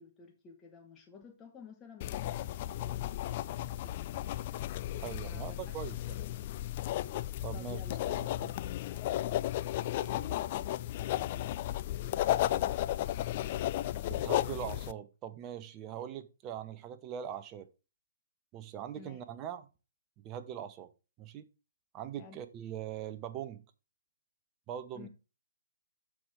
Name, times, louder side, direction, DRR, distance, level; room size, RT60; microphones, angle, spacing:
voice 1, 0.0-4.3 5.2-6.1 7.5-8.1 19.0-19.2 22.2-22.4 24.9-25.1, left 6 dB, 15° left, 1.3 m, -54 dB
sound 1, 2.0-14.9, left 14 dB, 35° left, 0.4 m, -34 dB
voice 2, 5.0-6.2 7.4-7.8 8.1-8.5 14.2-17.7 18.5-19.6 20.2-20.9 21.2-21.4 21.9-23.6 24.7-25.1, right 10 dB, 25° right, 1.0 m, -41 dB
13.5 x 4.9 x 3.6 m
figure-of-eight pair, 130°, 0 cm